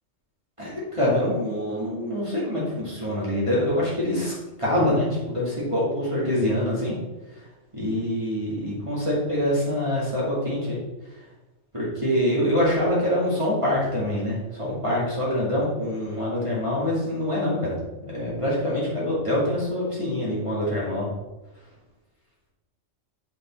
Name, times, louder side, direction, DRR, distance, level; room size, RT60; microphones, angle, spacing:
voice 1, 0.6-4.3 4.6-6.9 7.3-7.5 7.7-10.8 11.0-11.2 11.7-17.7 18.0-21.1, left 1 dB, 25° right, -7 dB, 2.4 m, -25 dB
7.7 x 6.0 x 4.4 m, 1.1 s
omnidirectional pair, 1.4 m